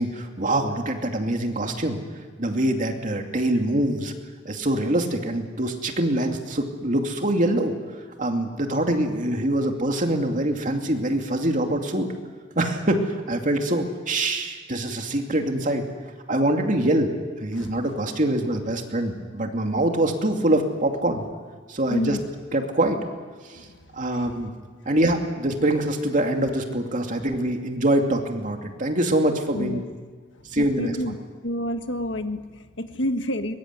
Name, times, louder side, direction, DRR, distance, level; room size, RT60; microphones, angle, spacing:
voice 1, 0.0-2.0 2.4-4.1 4.4-7.7 8.2-12.1 12.6-15.9 16.3-21.2 21.7-22.2 22.5-23.0 23.4-23.6 23.9-24.5 24.9-29.8 30.5-30.9, right 1 dB, 45° right, 3 dB, 2.6 m, -24 dB
voice 2, 17.5-17.9 19.7-19.8 21.9-22.2 23.5-24.5 26.4-26.5 27.2-27.3 29.5-29.8 30.5-31.2 31.4-33.5, left 1 dB, 75° left, 7 dB, 1.6 m, -30 dB
23.0 x 21.5 x 9.7 m, 1.5 s
head